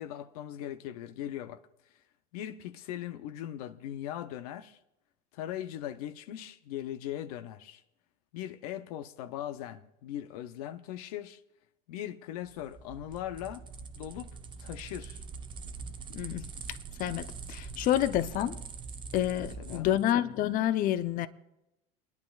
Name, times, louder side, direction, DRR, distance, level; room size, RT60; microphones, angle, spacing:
voice 1, 0.0-1.6 2.3-4.8 5.3-7.8 8.3-11.4 11.9-13.6 13.9-15.2 19.4-19.9, left 11 dB, 85° left, 0.7 m, -39 dB
sound 1, 12.4-20.1, right 5 dB, 25° right, 0.7 m, -43 dB
voice 2, 16.1-16.5 17.0-18.6 19.1-21.3, left 12 dB, 50° left, 0.7 m, -28 dB
30.0 x 10.5 x 2.4 m
supercardioid pair, 120°, 19 cm